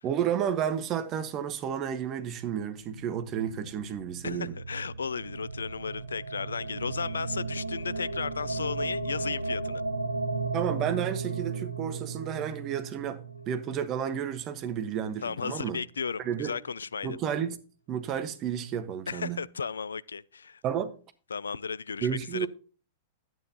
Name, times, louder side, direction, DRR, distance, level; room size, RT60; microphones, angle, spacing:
voice 1, 0.0-4.6 10.5-13.2 13.5-15.8 16.2-16.6 17.0-17.6 17.9-19.4 20.6-21.0 22.0-22.5, right 8 dB, 35° right, 1.4 m, -31 dB
sound 1, 2.8-15.0, right 3 dB, 80° right, 1.2 m, -36 dB
voice 2, 4.2-9.8 15.2-17.2 19.1-20.6 21.3-22.5, left 5 dB, 75° left, 0.3 m, -34 dB
11.5 x 9.3 x 2.9 m
figure-of-eight pair, 100°, 0 cm